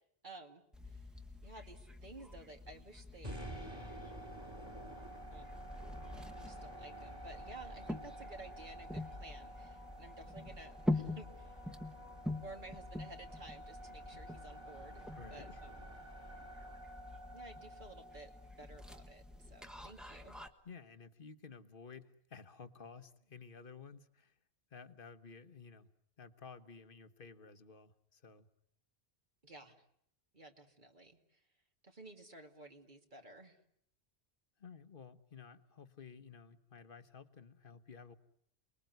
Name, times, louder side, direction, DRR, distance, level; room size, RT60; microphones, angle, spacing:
voice 1, 0.2-1.0 1.4-4.0 5.3-5.6 6.4-11.5 12.3-15.9 17.3-18.3 18.6-20.4 29.4-29.8 30.3-31.2 31.8-33.6, right 2 dB, 45° right, 4 dB, 2.4 m, -54 dB
sound 1, 0.7-20.5, left 1 dB, ahead, 1.3 m, -45 dB
sound 2, 3.2-19.4, right 1 dB, 25° right, 2.5 m, -50 dB
voice 2, 15.1-15.6 20.6-24.4 24.7-25.9 26.2-28.5 34.6-38.1, left 5 dB, 55° left, 11 dB, 1.4 m, -54 dB
29.0 x 20.5 x 9.3 m, 0.72 s
omnidirectional pair, 1.1 m